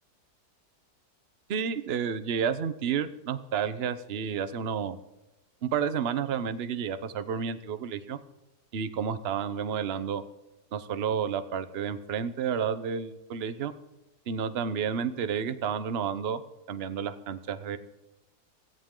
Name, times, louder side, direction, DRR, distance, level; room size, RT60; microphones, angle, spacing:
voice 1, 1.5-5.0 5.6-8.2 8.7-10.2 10.7-13.7 14.3-16.4 16.7-17.8, right 7 dB, 45° right, 12 dB, 0.9 m, -31 dB
16.5 x 15.5 x 3.8 m, 0.97 s
omnidirectional pair, 1.9 m